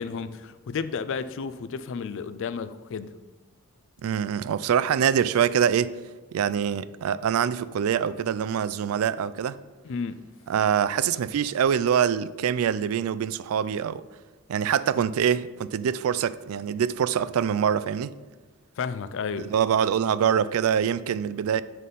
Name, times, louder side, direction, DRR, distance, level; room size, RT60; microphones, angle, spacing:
voice 1, 0.0-3.1 9.8-10.3 18.8-19.5, left 5 dB, 60° left, 0.4 m, -32 dB
voice 2, 4.0-5.9 6.3-9.6 10.5-14.0 14.5-18.1 19.4-21.6, right 8 dB, 70° right, 0.3 m, -24 dB
8.3 x 3.9 x 5.4 m
head